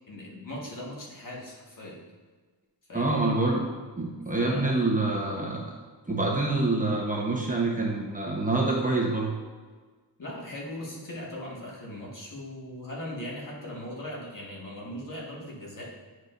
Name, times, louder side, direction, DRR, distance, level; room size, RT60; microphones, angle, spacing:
voice 1, 0.1-2.0 2.9-3.2 4.4-4.8 10.2-15.9, left 1 dB, 50° left, -5 dB, 1.9 m, -39 dB
voice 2, 2.9-3.7 4.0-5.6 6.1-9.3, right 2 dB, 20° right, -2 dB, 1.0 m, -26 dB
9.8 x 4.8 x 2.6 m, 1.4 s
wide cardioid pair, 110°, 42 cm